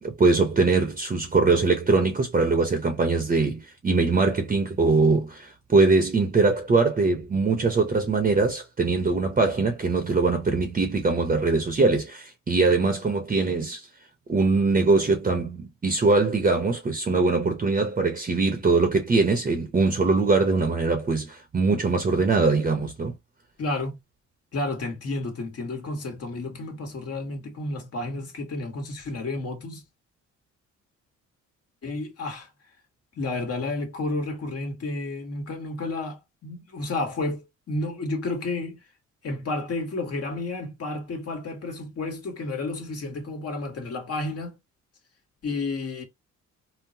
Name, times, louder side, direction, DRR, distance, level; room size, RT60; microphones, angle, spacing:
voice 1, 0.0-13.9 14.3-23.1, right 3 dB, 25° right, 0.7 m, -22 dB
voice 2, 23.6-24.0 24.5-29.8 31.8-32.5 33.1-38.8 39.2-44.5 45.4-46.0, left 2 dB, 55° left, 1.4 m, -31 dB
3.8 x 2.1 x 2.7 m
cardioid pair, 90°, 30 cm